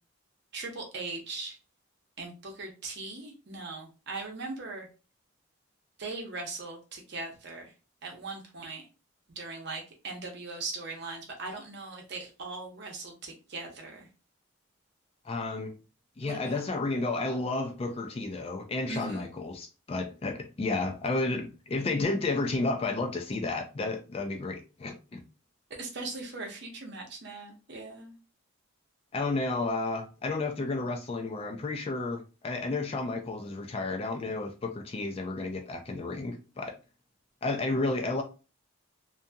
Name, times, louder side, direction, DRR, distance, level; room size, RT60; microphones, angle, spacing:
voice 1, 0.5-1.6 2.2-4.9 6.0-7.7 8.0-8.8 9.4-14.1 16.2-16.6 18.9-19.3 25.8-28.2, right 3 dB, 50° right, 0.7 m, -39 dB
voice 2, 15.2-15.7 16.2-25.2 29.1-36.7 37.4-38.2, left 3 dB, 25° left, 0.3 m, -32 dB
2.7 x 2.6 x 2.3 m
head